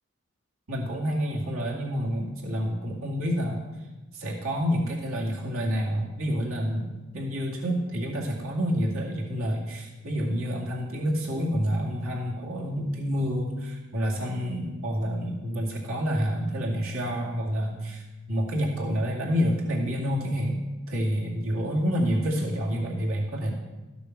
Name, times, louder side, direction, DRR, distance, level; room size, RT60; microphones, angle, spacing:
voice 1, 0.7-3.6 4.1-18.0 18.3-23.5, equal, 90° right, -3 dB, 2.4 m, -28 dB
14.0 x 7.0 x 5.9 m, 1.1 s
head